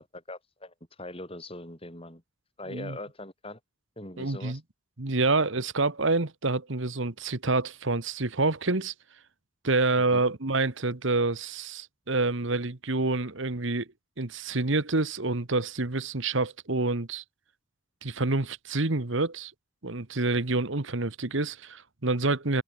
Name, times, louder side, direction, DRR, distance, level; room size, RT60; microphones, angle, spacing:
voice 1, 0.0-2.2 2.6-3.6 4.0-4.6 10.0-10.2, left 1 dB, 25° left, 7.7 m, -42 dB
voice 2, 4.2-4.6 5.0-8.9 9.6-13.9 14.2-17.2 18.0-19.5 19.8-22.6, right 3 dB, 65° right, 1.5 m, -27 dB
head